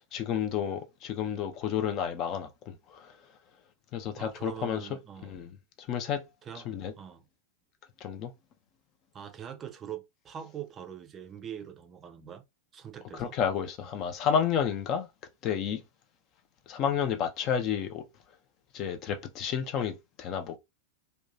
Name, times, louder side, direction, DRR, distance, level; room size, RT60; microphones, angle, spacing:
voice 1, 0.1-3.1 3.9-4.9 5.2-5.5 5.8-6.2 6.7-6.9 8.0-8.3 13.1-15.1 15.4-15.8 16.7-18.0 18.7-20.6, left 8 dB, 35° left, 0.5 m, -31 dB
voice 2, 4.2-5.4 6.4-6.7 7.0-7.3 9.1-12.4 12.7-13.3, right 9 dB, 25° right, 0.4 m, -43 dB
2.7 x 2.2 x 2.6 m
figure-of-eight pair, 90°, 0 cm